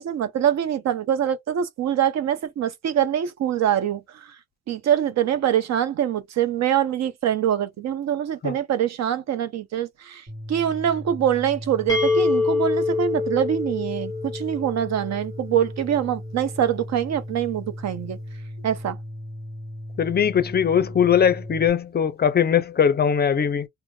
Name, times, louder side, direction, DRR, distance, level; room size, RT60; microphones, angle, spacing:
voice 1, 0.0-4.0 4.7-10.2 10.5-18.2 18.6-19.0, right 10 dB, 60° right, 0.7 m, -24 dB
sound 1, 10.3-21.7, left 1 dB, 30° right, 1.3 m, -37 dB
sound 2, 11.9-15.6, left 4 dB, 10° left, 0.9 m, -25 dB
voice 2, 20.0-23.7, left 8 dB, 35° left, 0.5 m, -20 dB
2.4 x 2.1 x 3.5 m
cardioid pair, 90°, 30 cm